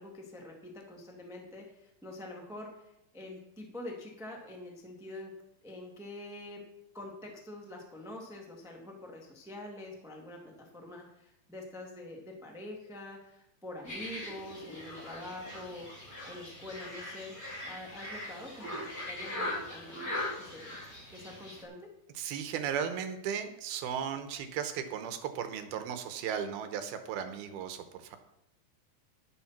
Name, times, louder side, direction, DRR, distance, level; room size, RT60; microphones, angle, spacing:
voice 1, 0.0-5.3 5.6-6.6 6.9-17.4 17.6-20.8 21.1-21.9, left 1 dB, ahead, 0 dB, 0.9 m, -45 dB
sound 1, 13.8-21.6, left 1 dB, 25° left, 3.9 m, -40 dB
voice 2, 22.1-28.2, right 8 dB, 75° right, 8 dB, 2.7 m, -36 dB
12.0 x 12.0 x 4.3 m, 0.82 s
omnidirectional pair, 4.7 m